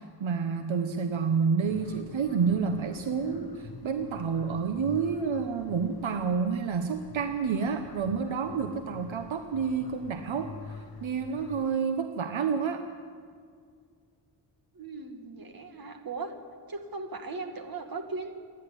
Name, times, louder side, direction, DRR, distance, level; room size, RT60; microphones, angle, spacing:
voice 1, 0.0-12.8, right 6 dB, 75° right, 7 dB, 1.2 m, -29 dB
sound 1, 1.6-11.7, left 5 dB, 50° left, 1.1 m, -47 dB
voice 2, 14.7-16.3 16.7-18.3, right 3 dB, 45° right, 5 dB, 2.2 m, -38 dB
28.0 x 11.0 x 9.9 m, 2.1 s
wide cardioid pair, 165°, 47 cm